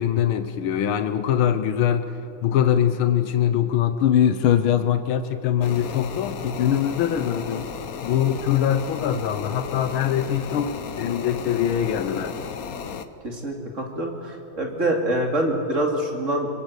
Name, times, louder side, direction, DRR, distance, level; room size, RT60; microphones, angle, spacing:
voice 1, 0.0-2.1 2.4-7.7 8.0-12.4, left 9 dB, 85° left, 10 dB, 1.8 m, -22 dB
sound 1, 5.6-13.1, left 6 dB, 50° left, 1.2 m, -34 dB
voice 2, 13.2-16.5, right 1 dB, 35° right, 1 dB, 3.0 m, -25 dB
25.5 x 22.5 x 8.2 m, 2.9 s
omnidirectional pair, 2.2 m